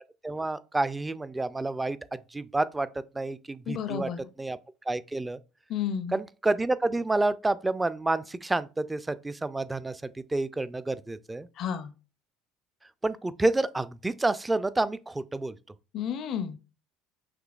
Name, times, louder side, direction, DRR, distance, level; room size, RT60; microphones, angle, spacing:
voice 1, 0.2-2.0 2.3-2.9 3.1-4.1 4.4-4.6 4.9-5.4 6.1-10.0 10.3-11.5 13.0-15.6, right 2 dB, 15° right, 0.4 m, -29 dB
voice 2, 3.7-4.2 5.7-6.2 11.6-11.9 15.9-16.6, left 8 dB, 55° left, 0.5 m, -31 dB
6.0 x 2.8 x 2.4 m
hypercardioid pair, 70°, 0 cm